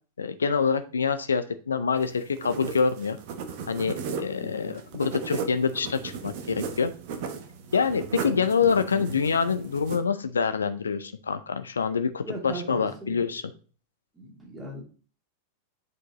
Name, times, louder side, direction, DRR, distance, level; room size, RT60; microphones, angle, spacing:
voice 1, 0.2-3.2 3.7-6.9 7.7-13.5, left 5 dB, 70° left, 10 dB, 0.5 m, -26 dB
sound 1, 2.0-10.0, right 5 dB, 50° right, 1.1 m, -37 dB
voice 2, 4.4-4.8 8.2-8.8 12.2-13.2 14.2-14.8, right 2 dB, 15° right, -1 dB, 2.5 m, -38 dB
8.4 x 4.6 x 2.9 m, 0.39 s
figure-of-eight pair, 90°, 0 cm